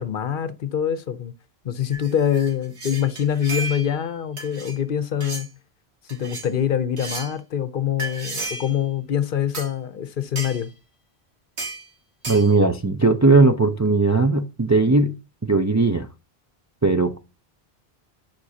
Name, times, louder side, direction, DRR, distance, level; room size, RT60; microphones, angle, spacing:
voice 1, 0.0-1.3 1.6-5.5 6.1-10.7, left 9 dB, 60° left, 0.8 m, -25 dB
sound 1, 1.9-4.0 4.4-4.8 5.2-5.5 6.1-6.5 7.0-7.3 8.0-8.8 9.5-9.7 10.4-10.7 11.6-11.8 12.2-12.5, right 2 dB, 90° right, 1.9 m, -33 dB
voice 2, 12.3-15.2 15.5-16.1 16.8-17.2, right 3 dB, 25° right, 0.4 m, -18 dB
11.0 x 4.5 x 2.8 m
omnidirectional pair, 1.1 m